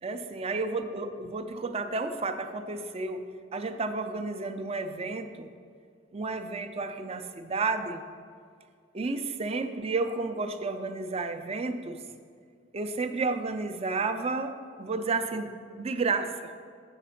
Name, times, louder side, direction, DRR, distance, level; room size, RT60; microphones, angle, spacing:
voice 1, 0.0-5.5 6.1-8.0 8.9-12.0 12.7-16.3, right 3 dB, 30° right, 8 dB, 0.4 m, -31 dB
7.2 x 5.0 x 5.6 m, 2.1 s
head